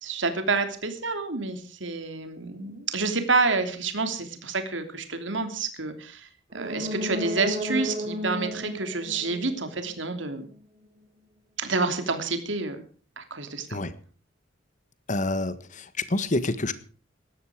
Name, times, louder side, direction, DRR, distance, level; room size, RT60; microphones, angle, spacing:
voice 1, 0.0-10.5 11.6-12.8 13.2-13.8, right 3 dB, 75° right, 7 dB, 3.0 m, -28 dB
sound 1, 6.5-10.2 10.5-10.6, left 1 dB, 40° right, 5.7 m, -34 dB
voice 2, 15.1-16.7, left 2 dB, 40° left, 13 dB, 1.6 m, -27 dB
18.5 x 13.5 x 5.0 m, 0.40 s
head